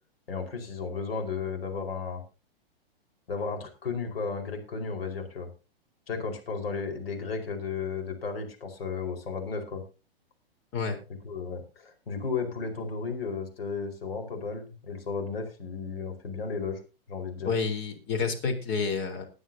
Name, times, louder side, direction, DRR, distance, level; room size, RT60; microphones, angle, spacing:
voice 1, 0.3-2.2 3.3-5.5 6.1-9.8 11.2-16.8 17.1-17.5, left 5 dB, 75° left, 5 dB, 4.8 m, -34 dB
voice 2, 17.5-19.2, left 5 dB, 35° left, 6 dB, 3.8 m, -29 dB
21.0 x 9.3 x 2.8 m, 0.31 s
hypercardioid pair, 115°, 30 cm